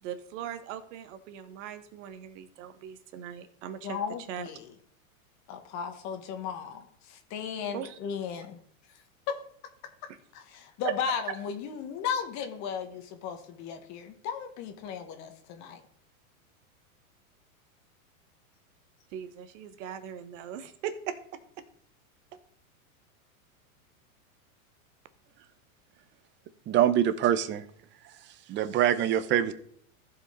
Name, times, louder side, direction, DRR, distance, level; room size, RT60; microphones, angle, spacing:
voice 1, 0.0-4.0 4.3-4.5 7.7-8.0 10.1-10.2 10.8-11.4 19.1-21.6, right 9 dB, 55° right, 10 dB, 1.3 m, -39 dB
voice 2, 3.8-4.7 5.5-8.6 9.3-9.4 10.3-15.8, left 7 dB, 40° left, 7 dB, 1.4 m, -35 dB
voice 3, 26.7-27.6 28.5-29.5, right 11 dB, 25° right, 13 dB, 0.7 m, -24 dB
15.0 x 5.1 x 3.8 m, 0.62 s
hypercardioid pair, 125°, 42 cm